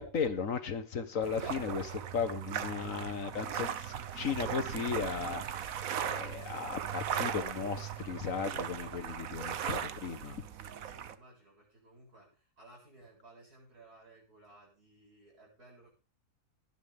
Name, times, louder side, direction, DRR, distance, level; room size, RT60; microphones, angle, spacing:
voice 1, 0.0-10.4, left 6 dB, 60° left, 10 dB, 1.8 m, -36 dB
sound 1, 1.2-11.1, right 9 dB, 65° right, 1.3 m, -38 dB
voice 2, 4.1-4.9 10.5-15.9, right 2 dB, 90° right, -1 dB, 8.3 m, -58 dB
19.0 x 10.5 x 3.6 m, 0.32 s
omnidirectional pair, 1.6 m